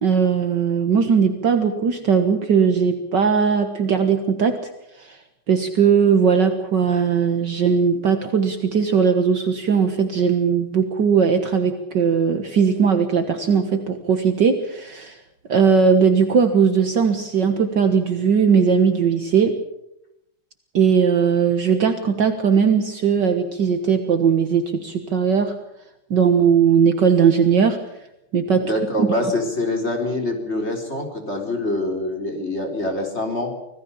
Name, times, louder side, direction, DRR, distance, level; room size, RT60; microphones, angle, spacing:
voice 1, 0.0-4.7 5.0-5.2 5.5-15.2 15.5-19.5 20.7-25.6 26.1-27.8 28.3-28.6 29.0-29.1, right 6 dB, 55° right, 7 dB, 2.0 m, -18 dB
voice 2, 28.5-33.5, left 1 dB, 30° left, 3 dB, 4.2 m, -25 dB
26.0 x 17.5 x 7.1 m, 0.84 s
omnidirectional pair, 2.3 m